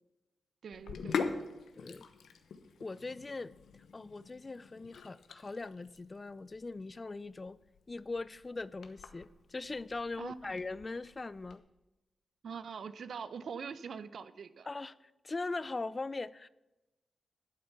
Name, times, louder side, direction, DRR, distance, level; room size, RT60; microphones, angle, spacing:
voice 1, 0.6-1.2 10.2-10.6 12.4-14.7, right 6 dB, 75° right, 14 dB, 0.7 m, -43 dB
Sink (filling or washing), 0.7-11.6, left 5 dB, 85° left, 0.9 m, -43 dB
voice 2, 1.8-2.1 2.8-3.5 3.9-7.6 7.9-11.6 14.7-16.5, left 3 dB, 35° left, 18 dB, 0.5 m, -40 dB
11.5 x 8.6 x 5.9 m, 1.0 s
cardioid pair, 65°, 0 cm